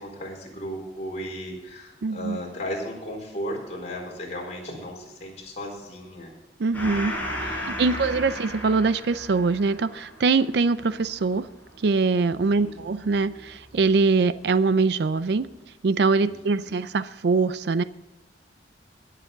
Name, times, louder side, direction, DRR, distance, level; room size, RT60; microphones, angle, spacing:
voice 1, 0.0-6.3 7.8-8.3 12.6-12.9 16.2-16.7, equal, 40° left, -2 dB, 4.2 m, -35 dB
voice 2, 2.0-2.4 6.6-7.2 7.5-11.5 11.8-15.5 15.8-17.8, right 4 dB, 65° right, 14 dB, 0.5 m, -23 dB
Gong, 6.7-13.7, equal, 10° left, 4.5 m, -35 dB
22.0 x 7.6 x 3.9 m, 1.1 s
head